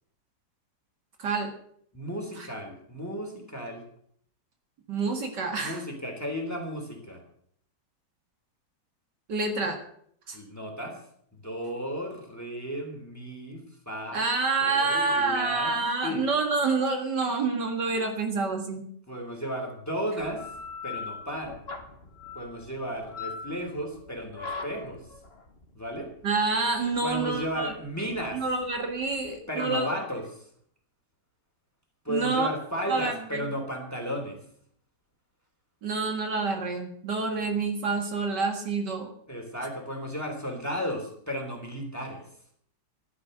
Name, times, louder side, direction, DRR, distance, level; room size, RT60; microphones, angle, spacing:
voice 1, 1.2-1.5 2.4-2.5 4.9-5.8 9.3-9.8 10.3-10.4 14.1-18.9 26.2-27.7 28.3-29.9 32.1-32.5 32.9-33.5 35.8-39.1, right 4 dB, 70° right, 4 dB, 2.6 m, -28 dB
voice 2, 1.9-3.8 5.6-7.2 10.3-11.0 11.3-14.3 14.6-15.7 16.0-16.2 19.1-20.5 20.8-21.6 22.3-25.1 25.7-26.1 27.0-28.4 29.5-30.5 32.0-34.4 39.3-42.3, equal, 10° left, 2 dB, 3.3 m, -34 dB
sound 1, 20.2-29.4, left 4 dB, 35° left, 1.6 m, -41 dB
14.0 x 11.5 x 6.6 m, 0.65 s
omnidirectional pair, 1.9 m